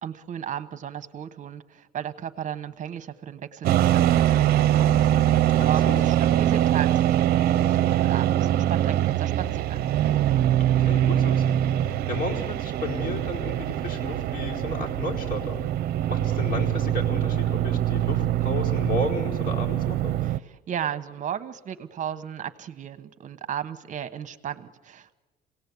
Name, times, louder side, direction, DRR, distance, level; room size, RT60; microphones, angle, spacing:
voice 1, 0.0-9.9 20.2-25.1, right 9 dB, 50° right, 10 dB, 1.1 m, -35 dB
sound 1, 3.6-20.4, right 12 dB, 65° right, 0.7 m, -23 dB
voice 2, 5.6-6.0 10.8-11.5 11.8-15.6 16.1-20.2, left 1 dB, 55° left, 0 dB, 4.7 m, -32 dB
27.0 x 17.5 x 8.4 m, 1.3 s
cardioid pair, 110°, 17 cm